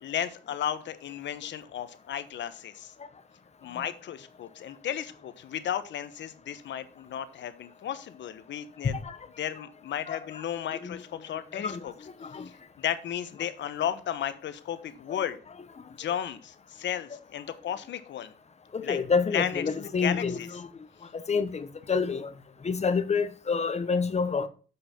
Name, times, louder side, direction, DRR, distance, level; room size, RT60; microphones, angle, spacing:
voice 1, 0.0-2.9 3.6-9.0 9.4-11.9 12.4-15.4 16.0-18.3 18.8-19.0 19.3-19.6 20.0-20.5, left 10 dB, 65° left, 1.1 m, -34 dB
voice 2, 8.8-9.2 10.1-10.4 10.7-11.0 11.5-11.8 12.2-12.5 15.1-15.2 18.7-20.7 21.1-22.3 22.6-24.5, left 5 dB, 35° left, 1.0 m, -28 dB
7.9 x 5.6 x 5.7 m
cardioid pair, 90°, 20 cm